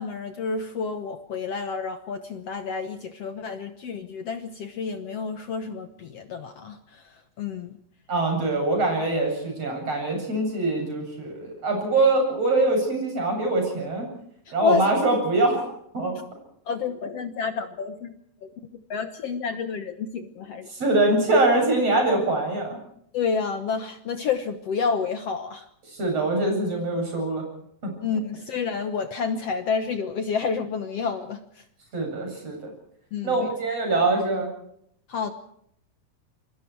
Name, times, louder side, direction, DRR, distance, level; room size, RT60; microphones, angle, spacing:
voice 1, 0.0-6.8 7.4-7.7 14.6-14.9 16.7-18.1 18.4-18.5 18.9-20.7 23.1-25.6 28.0-31.4 33.1-33.5 35.1-35.3, left 5 dB, 75° left, 8 dB, 1.4 m, -29 dB
voice 2, 8.1-14.1 14.5-15.6 15.9-16.2 20.7-22.7 25.9-27.4 27.8-27.9 31.9-32.7 33.2-34.5, right 2 dB, 40° right, 2 dB, 9.0 m, -23 dB
28.0 x 23.0 x 4.7 m, 0.71 s
omnidirectional pair, 4.5 m